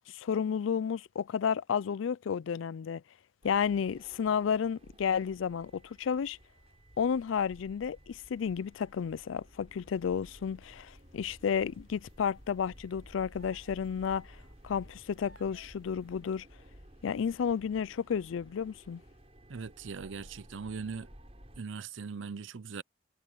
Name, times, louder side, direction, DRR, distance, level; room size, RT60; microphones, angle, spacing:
voice 1, 0.1-3.0 3.4-6.4 7.0-14.4 14.6-16.5 17.0-19.0, left 7 dB, 80° left, 0.4 m, -32 dB
sound 1, 3.4-21.6, equal, 30° right, 4.6 m, -55 dB
sound 2, 10.9-11.3 13.4-14.0 14.4-14.5 15.2-15.9, right 2 dB, 55° right, 4.6 m, -60 dB
voice 2, 19.5-21.1 21.6-22.8, right 5 dB, 75° right, 0.6 m, -40 dB
head